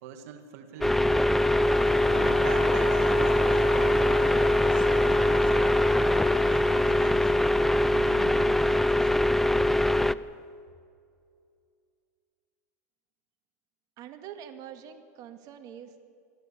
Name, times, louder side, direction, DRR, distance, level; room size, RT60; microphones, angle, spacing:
voice 1, 0.0-1.1 2.0-4.1 4.6-5.7 6.3-7.3 7.8-10.2, right 8 dB, 70° right, 7 dB, 1.8 m, -45 dB
sound 1, 0.8-10.3, left 3 dB, 75° left, 6.2 m, -39 dB
sound 2, 0.8-10.1, left 1 dB, 5° left, 0.5 m, -23 dB
voice 2, 14.0-16.0, right 9 dB, 45° right, 6 dB, 2.0 m, -44 dB
24.5 x 14.5 x 8.6 m, 2.3 s
supercardioid pair, 125°, 8 cm